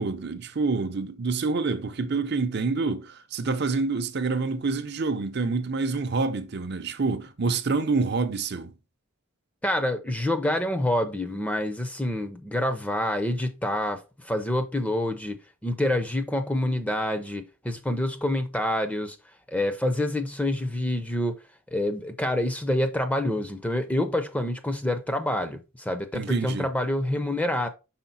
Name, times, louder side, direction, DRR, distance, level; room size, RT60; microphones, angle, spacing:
voice 1, 0.0-8.7 26.1-26.7, right 4 dB, 50° right, 0.6 m, -27 dB
voice 2, 9.6-19.2 19.5-21.4 21.7-27.7, left 1 dB, 5° left, 0.6 m, -27 dB
5.8 x 4.8 x 4.0 m
head